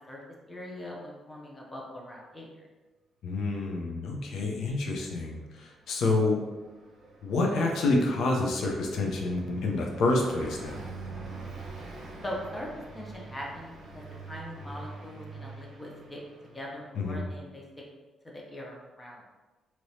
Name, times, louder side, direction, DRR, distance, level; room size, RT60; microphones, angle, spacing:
voice 1, 0.5-2.5 12.2-12.7 12.9-16.2 16.5-17.6 18.2-19.2, left 1 dB, 20° left, -2 dB, 0.7 m, -41 dB
voice 2, 3.2-6.4 7.2-10.8 17.0-17.3, left 2 dB, 70° left, 1 dB, 0.6 m, -28 dB
Car passing by, 5.9-17.0, right 3 dB, 60° right, 0.7 m, -45 dB
3.1 x 2.9 x 2.7 m, 1.2 s
cardioid pair, 90°, 0 cm